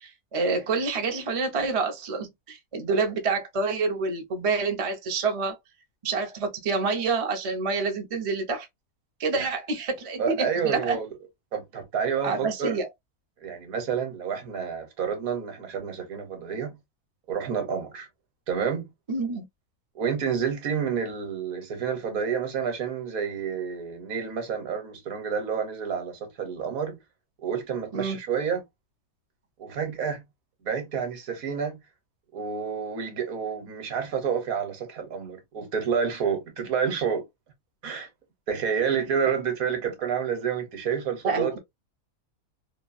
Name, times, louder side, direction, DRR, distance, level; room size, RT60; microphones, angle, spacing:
voice 1, 0.0-5.6 6.0-8.7 9.2-11.0 12.2-12.9 19.1-19.5 27.9-28.2 41.2-41.6, right 4 dB, 50° right, 0.4 m, -27 dB
voice 2, 10.2-11.1 11.5-12.8 13.4-16.8 17.3-18.1 18.5-18.9 19.9-27.0 27.4-28.6 29.6-30.2 30.6-31.8 32.3-37.2 37.8-38.1 38.5-41.6, right 7 dB, 70° right, 1.3 m, -29 dB
3.0 x 2.3 x 2.4 m
omnidirectional pair, 1.6 m